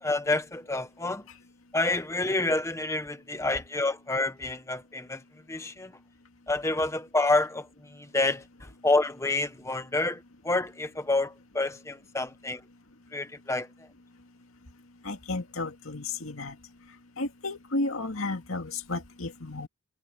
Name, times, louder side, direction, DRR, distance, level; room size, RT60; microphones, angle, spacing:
voice 1, 0.0-1.2 1.7-5.2 5.5-5.9 6.5-12.6 13.1-13.9, left 2 dB, 15° left, 1.0 m, -28 dB
voice 2, 15.0-16.6 17.2-19.7, left 2 dB, 85° left, 2.3 m, -33 dB
head